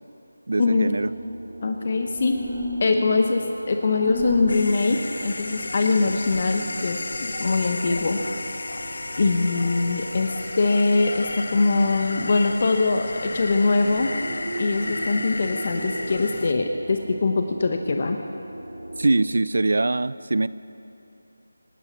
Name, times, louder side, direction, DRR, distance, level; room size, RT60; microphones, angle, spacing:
voice 1, 0.5-1.1 19.0-20.5, right 2 dB, 60° right, 17 dB, 0.5 m, -22 dB
sound 1, 0.8-19.1, right 1 dB, 45° right, 4.2 m, -39 dB
voice 2, 1.6-2.3 2.8-8.2 9.2-14.1 14.6-18.2, left 3 dB, 40° left, 4 dB, 1.0 m, -22 dB
sound 2, 2.1-2.8 3.9-4.7, left 2 dB, 10° right, 4.4 m, -32 dB
sound 3, 4.5-16.5, left 2 dB, 60° left, 1.0 m, -33 dB
26.5 x 9.0 x 5.8 m, 2.8 s
figure-of-eight pair, 170°, 0 cm